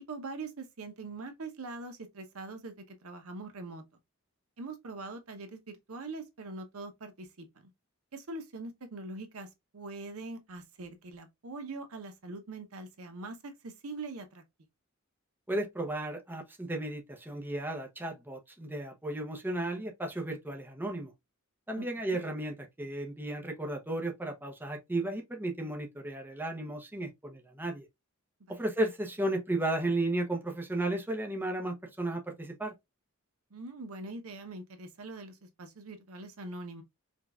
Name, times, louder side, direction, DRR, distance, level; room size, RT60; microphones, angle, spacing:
voice 1, 0.0-3.8 4.6-7.5 8.1-9.5 9.7-14.4 21.7-22.2 28.5-28.6 33.5-36.8, right 3 dB, 80° right, 0.8 m, -43 dB
voice 2, 15.5-21.1 21.7-27.8 28.5-32.7, right 1 dB, 10° right, 0.7 m, -34 dB
5.1 x 2.3 x 2.4 m
head